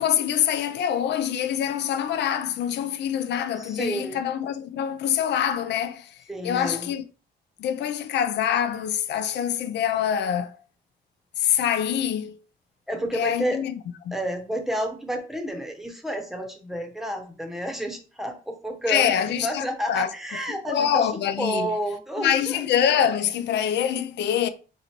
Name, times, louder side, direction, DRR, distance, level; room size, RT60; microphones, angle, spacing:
voice 1, 0.0-7.0 7.6-10.6 11.4-12.4 13.1-13.7 14.1-14.2 18.9-20.1 20.5-21.7 22.2-24.5, left 9 dB, 80° left, 0.5 m, -25 dB
voice 2, 3.6-4.2 6.3-6.9 12.9-13.6 14.1-21.1 21.4-22.6, right 1 dB, ahead, 0.8 m, -30 dB
3.9 x 3.0 x 4.3 m
cardioid pair, 150°, 18 cm